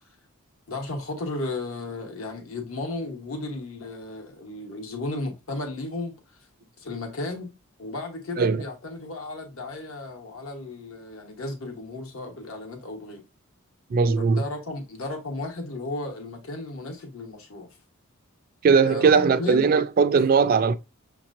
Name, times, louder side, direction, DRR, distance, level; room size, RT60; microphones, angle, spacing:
voice 1, 0.7-6.5 6.8-7.5 7.8-13.2 14.2-17.7 18.8-19.7, left 2 dB, 75° left, 1.1 m, -34 dB
voice 2, 13.9-14.4 18.6-20.8, right 5 dB, 45° right, 0.3 m, -19 dB
6.4 x 2.9 x 2.5 m
head